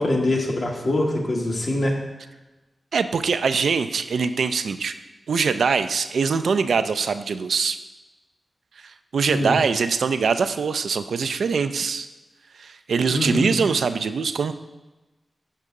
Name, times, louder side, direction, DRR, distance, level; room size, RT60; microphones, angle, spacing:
voice 1, 0.0-1.9 9.3-9.6 13.1-13.5, left 1 dB, 60° left, 0 dB, 1.3 m, -23 dB
voice 2, 2.9-5.0 5.3-7.8 8.8-12.1 12.6-14.5, right 5 dB, 85° right, 10 dB, 0.3 m, -23 dB
6.6 x 5.6 x 3.6 m, 1.1 s
cardioid pair, 45°, 0 cm